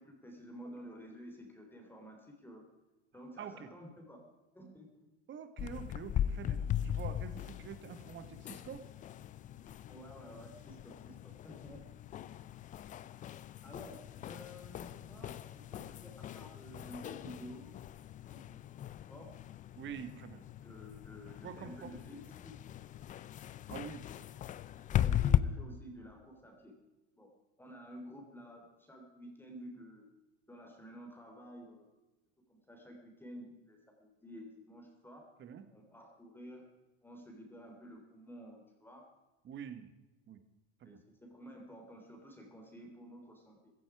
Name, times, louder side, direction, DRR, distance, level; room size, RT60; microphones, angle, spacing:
voice 1, 0.0-2.7 3.1-4.2 4.5-5.1 9.9-11.8 13.6-13.9 14.2-15.4 15.7-17.8 18.3-18.8 19.1-19.3 20.6-22.6 24.9-26.7 27.2-27.3 27.6-30.1 30.5-31.9 32.5-35.2 35.7-36.6 37.0-39.1 40.8-43.7, equal, 5° left, 2 dB, 3.3 m, -51 dB
voice 2, 3.4-3.7 5.3-8.8 19.8-20.4 21.4-21.9 23.7-24.1 35.4-35.6 39.4-39.9 40.3-40.4 40.8-41.0, right 8 dB, 30° right, 10 dB, 1.7 m, -46 dB
sound 1, 5.6-25.4, left 11 dB, 25° left, 0.4 m, -38 dB
16.5 x 14.0 x 4.9 m, 1.1 s
supercardioid pair, 120°, 35 cm